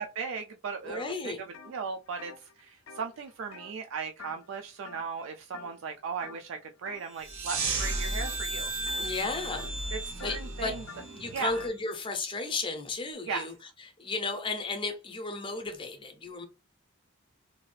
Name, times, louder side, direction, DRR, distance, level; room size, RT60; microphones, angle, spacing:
voice 1, 0.0-1.3 1.7-9.0 9.9-10.8 11.3-11.6 13.3-13.5, right 5 dB, 70° right, 0.3 m, -37 dB
voice 2, 0.8-1.4 8.9-9.7 10.2-10.8 11.1-16.4, left 3 dB, 25° left, 0.5 m, -34 dB
sound 1, 1.5-1.7 2.1-4.6 4.8-5.2 5.5-5.9 6.2-7.0 7.5-7.8 8.1-11.8, left 5 dB, 70° left, 0.4 m, -49 dB
sound 2, 7.1-11.7, right 1 dB, 20° right, 0.6 m, -38 dB
sound 3, 7.2-11.7, right 3 dB, 90° right, 0.8 m, -36 dB
2.7 x 2.4 x 3.2 m
head